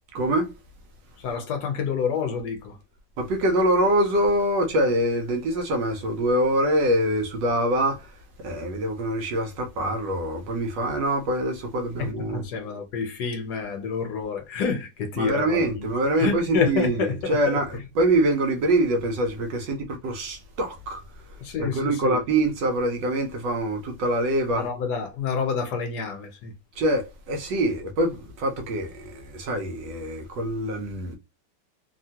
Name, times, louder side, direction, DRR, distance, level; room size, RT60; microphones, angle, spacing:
voice 1, 0.1-0.5 3.2-12.4 15.2-21.0 21.6-24.6 26.8-31.2, right 1 dB, 85° right, 1.4 m, -24 dB
voice 2, 1.2-2.8 12.0-15.9 16.2-17.6 21.4-22.2 24.6-26.5, left 6 dB, 70° left, 1.2 m, -28 dB
3.4 x 2.2 x 2.8 m
omnidirectional pair, 1.9 m